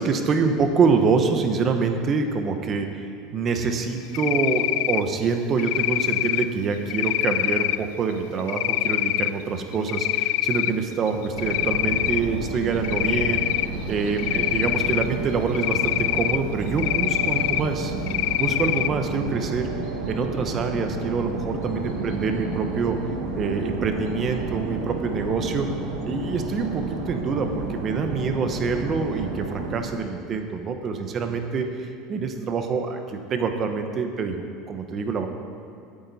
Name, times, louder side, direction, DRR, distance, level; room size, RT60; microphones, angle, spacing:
voice 1, 0.0-13.5 13.9-17.9 18.4-19.7 20.0-23.0 23.3-25.7 26.0-35.3, right 5 dB, 25° right, 6 dB, 0.9 m, -26 dB
Cricket, 4.1-5.0 5.6-6.4 6.9-7.8 8.5-9.3 9.7-10.7 11.1-12.2 12.8-13.7 14.2-15.0 15.5-16.4 16.8-17.6 18.1-18.9, left 16 dB, 75° left, 0.3 m, -24 dB
sound 1, 11.3-29.7, right 3 dB, 85° right, 2.7 m, -31 dB
17.5 x 8.7 x 4.1 m, 2.6 s
cardioid pair, 165°, 0 cm